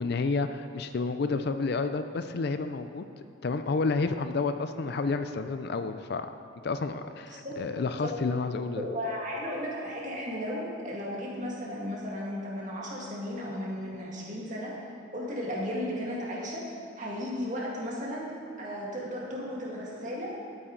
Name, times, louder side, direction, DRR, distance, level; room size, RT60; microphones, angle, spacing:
voice 1, 0.0-3.0 3.4-6.3 6.6-8.8, left 4 dB, 55° left, 9 dB, 0.4 m, -30 dB
voice 2, 7.3-7.6 8.0-8.1 8.8-14.7 15.1-16.6 17.0-18.3 18.6-20.3, equal, 40° right, -4 dB, 2.0 m, -35 dB
13.0 x 8.4 x 3.9 m, 2.6 s
head